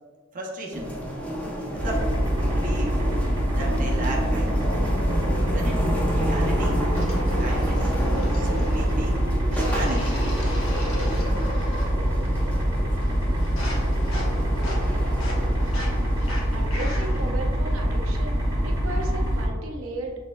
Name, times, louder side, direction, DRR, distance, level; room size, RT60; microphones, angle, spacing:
voice 1, 0.3-0.9 1.7-2.1 2.5-3.0 3.5-4.6 5.5-6.8 7.4-7.9 8.4-10.1, right 1 dB, 40° right, -1 dB, 0.6 m, -34 dB
sound 1, 0.7-16.8, equal, 5° left, 0.7 m, -31 dB
sound 2, 1.8-19.5, equal, 20° right, 1.3 m, -24 dB
sound 3, 6.9-9.0 9.5-12.0 12.2-12.7 13.0-17.3, left 1 dB, 80° left, 1.0 m, -38 dB
voice 2, 16.5-20.1, right 2 dB, 85° right, 1 dB, 0.7 m, -35 dB
6.1 x 3.5 x 2.2 m, 1.5 s
head